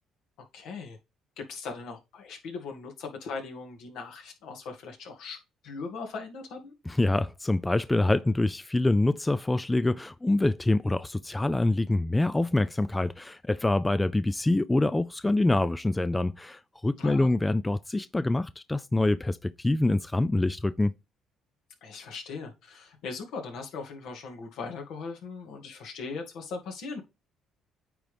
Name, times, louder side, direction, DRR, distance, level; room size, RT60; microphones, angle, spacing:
voice 1, 0.5-1.0 1.4-5.4 5.6-6.7 17.0-17.3 21.8-27.0, left 4 dB, 75° left, 2.1 m, -39 dB
voice 2, 6.9-20.9, left 2 dB, 15° left, 0.3 m, -25 dB
9.1 x 3.8 x 3.3 m
supercardioid pair, 85°, 0 cm